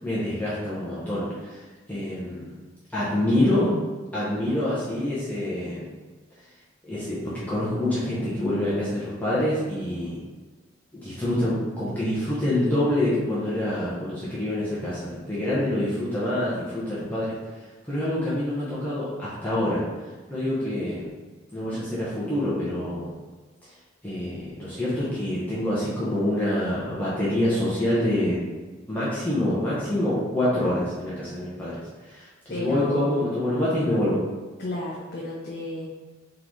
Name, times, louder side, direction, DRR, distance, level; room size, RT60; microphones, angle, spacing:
voice 1, 0.0-2.5 2.9-3.7 4.1-5.9 6.8-10.2 10.9-19.8 20.3-21.1 21.5-23.2 24.0-28.4 28.9-32.3 32.6-34.2, left 1 dB, 10° left, -10 dB, 0.8 m, -26 dB
voice 2, 32.5-33.2 34.6-35.9, left 1 dB, 55° left, -4 dB, 0.6 m, -32 dB
3.8 x 3.8 x 3.0 m, 1.3 s
head